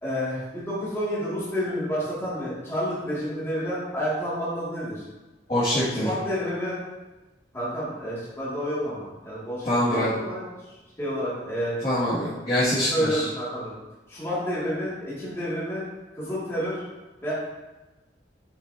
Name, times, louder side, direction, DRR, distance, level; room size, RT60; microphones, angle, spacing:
voice 1, 0.0-5.0 5.9-6.8 7.5-11.8 12.8-13.7 14.1-15.9 16.1-16.8 17.2-17.3, equal, 15° left, -10 dB, 2.4 m, -30 dB
voice 2, 5.5-6.1 9.7-10.1 11.8-13.2, left 1 dB, 35° left, -14 dB, 2.3 m, -24 dB
7.4 x 6.2 x 2.8 m, 1.1 s
head